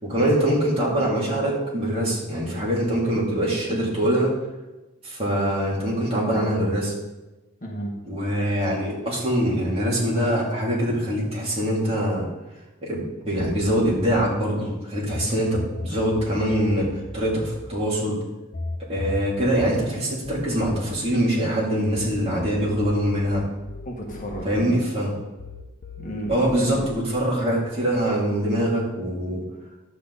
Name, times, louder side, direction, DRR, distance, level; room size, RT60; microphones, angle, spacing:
voice 1, 0.0-4.3 5.0-6.9 8.1-12.3 12.8-18.2 18.9-23.4 24.4-25.2 26.3-29.4, equal, 30° right, -5 dB, 3.1 m, -23 dB
voice 2, 7.6-7.9 23.8-24.9 26.0-26.9, right 1 dB, 40° left, -1 dB, 1.6 m, -33 dB
sound 1, 13.4-15.2 15.5-22.1 22.4-25.1 25.4-27.0, left 2 dB, 55° left, 0.8 m, -37 dB
11.0 x 8.3 x 4.2 m, 1.1 s
head